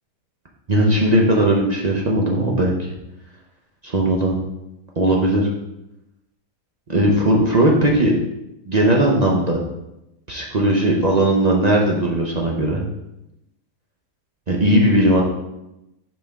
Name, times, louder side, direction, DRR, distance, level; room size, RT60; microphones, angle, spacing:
voice 1, 0.7-2.9 3.8-4.4 5.0-5.5 6.9-8.1 8.7-9.6 10.3-12.8 14.5-15.2, right 1 dB, 55° right, -2 dB, 0.4 m, -18 dB
5.5 x 5.2 x 3.5 m, 0.90 s
omnidirectional pair, 1.8 m